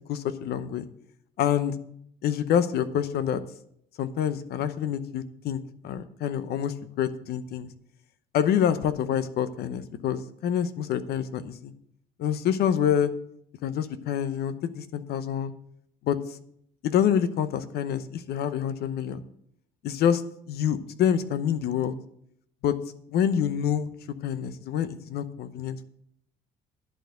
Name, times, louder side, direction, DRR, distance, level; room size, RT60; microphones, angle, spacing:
voice 1, 0.1-0.8 1.4-1.7 2.2-3.4 4.0-7.7 8.3-11.7 12.2-13.1 13.6-15.5 16.0-16.2 16.8-19.2 19.8-20.2 20.5-21.9 22.6-22.8 23.1-23.9 24.2-25.8, left 9 dB, 70° left, 13 dB, 0.8 m, -27 dB
11.0 x 4.4 x 7.9 m, 0.71 s
cardioid pair, 110°, 17 cm